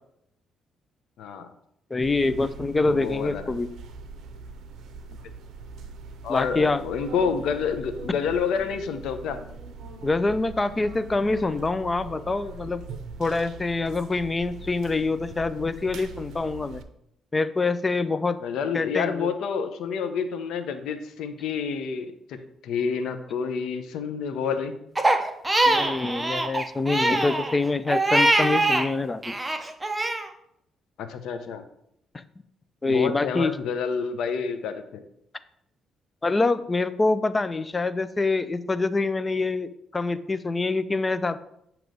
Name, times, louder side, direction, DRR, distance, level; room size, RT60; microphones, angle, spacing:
voice 1, 1.2-1.5 2.8-3.5 6.2-9.4 18.4-22.4 22.6-24.8 31.0-31.6 32.8-35.0, left 6 dB, 80° left, 8 dB, 0.6 m, -29 dB
voice 2, 1.9-3.7 6.3-6.8 10.0-12.8 13.2-16.8 17.3-18.4 18.7-19.3 25.7-29.4 32.8-33.5 36.2-41.4, left 3 dB, 25° left, 13 dB, 0.4 m, -25 dB
sound 1, 2.0-16.8, right 4 dB, 75° right, 0.6 m, -42 dB
Crying sobbing, 25.0-28.9 29.2-30.3, right 2 dB, 15° right, 0.6 m, -23 dB
7.6 x 3.0 x 5.2 m, 0.76 s
cardioid pair, 90°, 0 cm